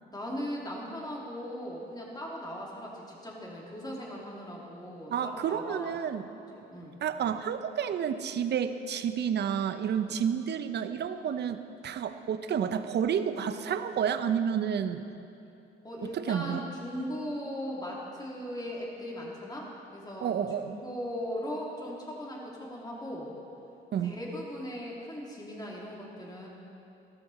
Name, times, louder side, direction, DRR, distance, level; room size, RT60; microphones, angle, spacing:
voice 1, 0.1-5.9 6.7-7.0 10.0-10.2 15.8-20.3 20.6-23.3 24.0-26.5, equal, 20° left, -3 dB, 3.1 m, -38 dB
voice 2, 5.1-6.3 7.0-15.1 16.1-16.6 20.2-20.8 23.9-24.2, right 8 dB, 60° right, 10 dB, 0.8 m, -30 dB
14.0 x 13.5 x 4.3 m, 2.7 s
cardioid pair, 90°, 20 cm